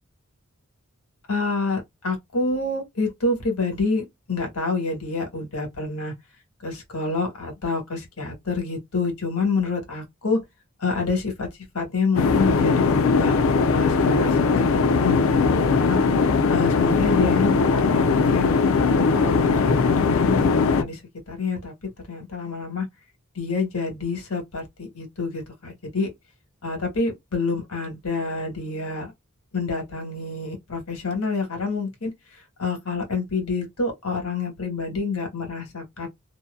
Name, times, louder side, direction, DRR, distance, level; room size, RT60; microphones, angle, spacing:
voice 1, 1.3-6.1 6.6-10.4 10.8-11.5 11.7-13.4 13.7-16.0 16.5-18.5 19.1-21.0 21.3-22.9 23.3-26.1 26.6-29.1 29.5-36.1, left 4 dB, 85° left, 1.2 m, -28 dB
sound 1, 12.1-20.8, left 4 dB, 70° left, 0.4 m, -20 dB
2.7 x 2.1 x 2.2 m
head